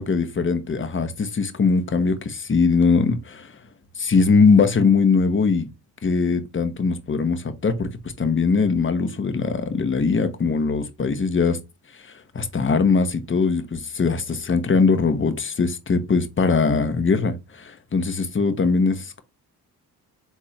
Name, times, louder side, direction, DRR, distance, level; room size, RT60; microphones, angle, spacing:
voice 1, 0.0-3.5 4.0-5.7 6.0-7.9 8.2-11.6 12.3-19.2, left 4 dB, 30° left, 1.1 m, -21 dB
4.3 x 3.6 x 3.2 m
supercardioid pair, 55°, 41 cm